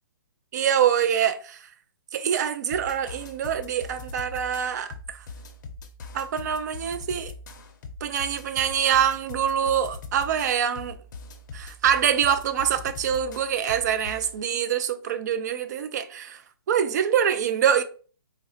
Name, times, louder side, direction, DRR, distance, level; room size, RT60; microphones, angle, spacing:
voice 1, 0.5-1.6 2.1-5.2 6.1-7.3 8.0-11.0 11.5-16.4 16.7-17.8, right 9 dB, 45° right, 0.4 m, -25 dB
sound 1, 2.7-14.4, left 3 dB, 50° left, 0.5 m, -42 dB
3.8 x 2.0 x 2.7 m
hypercardioid pair, 145°, 12 cm